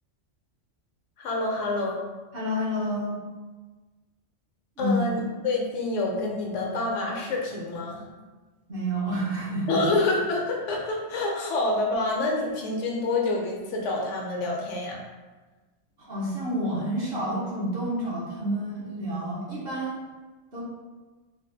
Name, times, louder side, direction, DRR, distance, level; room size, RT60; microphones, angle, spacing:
voice 1, 1.2-2.0 4.8-8.0 9.7-15.0, left 2 dB, 75° left, -1 dB, 0.9 m, -27 dB
voice 2, 2.3-3.2 4.8-5.0 8.7-9.8 16.0-20.0 20.5-20.6, equal, 55° right, -6 dB, 1.0 m, -29 dB
3.3 x 2.3 x 2.6 m, 1.3 s
omnidirectional pair, 1.3 m